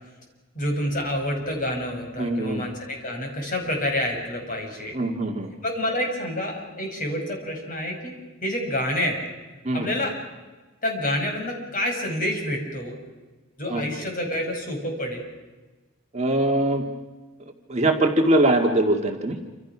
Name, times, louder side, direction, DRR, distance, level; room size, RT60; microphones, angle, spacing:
voice 1, 0.5-5.0 5.6-9.2 9.7-10.1 10.8-13.0 13.6-15.2, left 1 dB, 40° left, 2 dB, 6.0 m, -28 dB
voice 2, 2.2-2.6 4.9-5.5 9.6-9.9 13.7-13.8 16.1-16.8 17.7-19.4, right 1 dB, 30° right, 2 dB, 2.0 m, -22 dB
28.0 x 26.5 x 6.1 m, 1.2 s
head